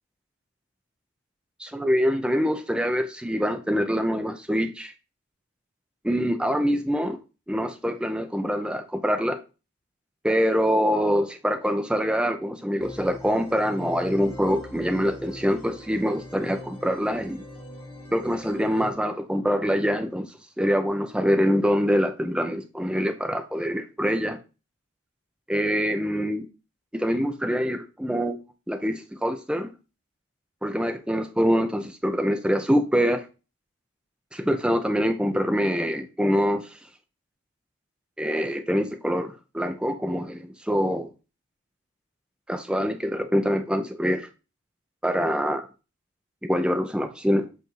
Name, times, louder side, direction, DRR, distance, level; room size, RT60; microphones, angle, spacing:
voice 1, 1.6-4.9 6.0-7.2 7.5-9.4 10.2-17.4 18.1-24.4 25.5-26.5 26.9-28.4 28.7-29.7 30.6-33.2 34.3-36.7 38.2-41.1 42.5-44.3 45.0-45.7 46.5-47.5, equal, 5° right, 6 dB, 0.5 m, -25 dB
sound 1, 12.8-18.9, left 1 dB, 25° left, 1.0 m, -42 dB
7.9 x 2.6 x 4.6 m, 0.32 s
head